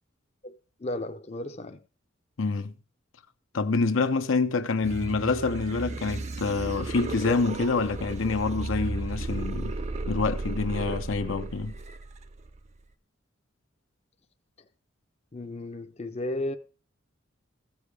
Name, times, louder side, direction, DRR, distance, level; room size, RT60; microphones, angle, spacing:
voice 1, 0.4-1.8 15.3-16.6, left 1 dB, 30° left, 0.6 m, -34 dB
voice 2, 2.4-2.7 3.5-9.8 10.1-11.8, left 4 dB, 80° left, 0.7 m, -27 dB
sound 1, 4.8-12.8, right 2 dB, 35° right, 0.6 m, -34 dB
15.0 x 7.2 x 4.8 m
head